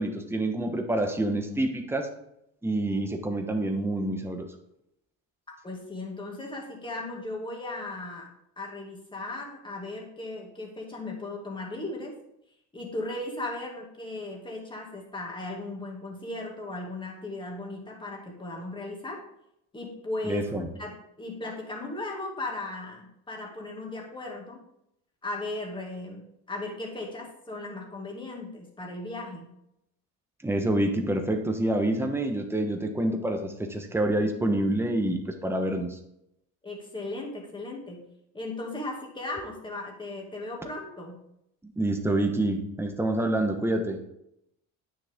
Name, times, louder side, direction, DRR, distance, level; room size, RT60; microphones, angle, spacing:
voice 1, 0.0-2.1 2.6-4.5 20.2-20.7 30.4-36.0 41.8-44.0, right 1 dB, 5° right, 4 dB, 1.2 m, -27 dB
voice 2, 5.6-8.3 8.6-12.1 12.7-19.2 19.7-20.4 20.8-24.6 25.2-26.2 26.5-29.5 36.6-38.1 38.3-41.2, left 2 dB, 15° left, -1 dB, 2.4 m, -37 dB
9.7 x 6.6 x 3.7 m, 0.79 s
cardioid pair, 120°, 34 cm